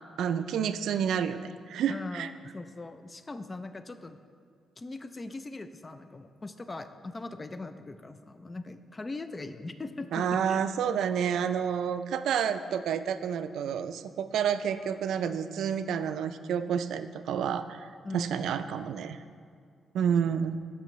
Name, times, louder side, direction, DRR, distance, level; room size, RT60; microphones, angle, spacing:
voice 1, 0.2-2.3 10.1-19.2 19.9-20.6, right 8 dB, 80° right, 11 dB, 0.3 m, -29 dB
voice 2, 1.9-4.2 4.8-10.6 18.0-18.3, left 3 dB, 20° left, 10 dB, 0.3 m, -40 dB
13.0 x 5.4 x 3.1 m, 2.2 s
cardioid pair, 155°, 0 cm